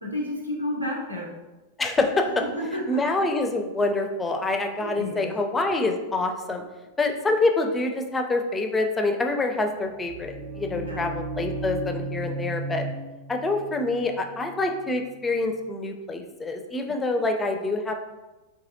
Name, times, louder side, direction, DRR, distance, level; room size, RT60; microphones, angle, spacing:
voice 1, 0.0-1.3 2.4-3.0 4.8-5.3 10.7-11.1, left 1 dB, 85° right, -4 dB, 0.8 m, -31 dB
voice 2, 1.8-2.2 2.9-6.6 7.0-12.9 13.3-17.9, left 2 dB, 15° left, 4 dB, 0.4 m, -26 dB
sound 1, 9.8-15.6, right 2 dB, 50° right, 0.7 m, -35 dB
4.0 x 2.7 x 2.6 m, 1.1 s
figure-of-eight pair, 90°, 0 cm